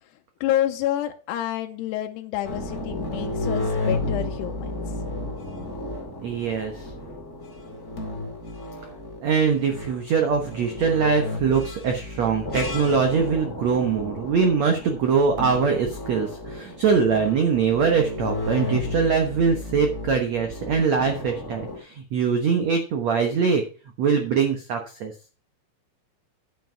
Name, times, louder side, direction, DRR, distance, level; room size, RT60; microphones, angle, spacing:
voice 1, 0.4-4.8, left 12 dB, 80° left, 4 dB, 2.7 m, -28 dB
sound 1, 2.4-21.8, left 2 dB, 30° left, 1.4 m, -32 dB
voice 2, 6.2-6.9 9.2-23.6 24.0-25.1, right 5 dB, 75° right, 4 dB, 1.6 m, -22 dB
9.4 x 8.2 x 4.7 m, 0.36 s
omnidirectional pair, 5.0 m